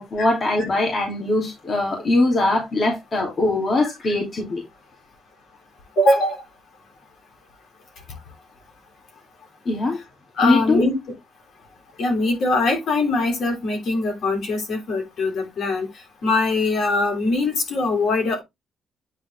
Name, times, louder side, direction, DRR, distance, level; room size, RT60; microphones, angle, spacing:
voice 1, 0.0-4.6 9.7-10.0 10.4-10.8, left 2 dB, 45° left, 2.6 m, -21 dB
voice 2, 6.0-6.4 10.4-11.0 12.0-15.9 16.2-18.4, left 2 dB, 65° left, 3.4 m, -22 dB
9.1 x 3.9 x 3.3 m
cardioid pair, 80°, 0 cm